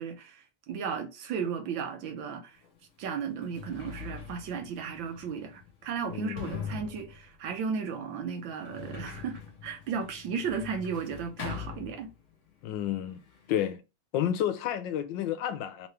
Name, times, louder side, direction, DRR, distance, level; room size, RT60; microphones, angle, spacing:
voice 1, 0.0-2.6 3.0-12.1, right 6 dB, 80° right, 1.6 m, -35 dB
Sliding door, 2.6-2.7 3.3-12.5 12.7-13.6, left 6 dB, 45° left, 1.2 m, -43 dB
voice 2, 6.1-6.5 12.6-13.2 13.5-13.8 14.1-15.9, left 10 dB, 80° left, 1.3 m, -30 dB
3.7 x 3.0 x 3.2 m
omnidirectional pair, 2.1 m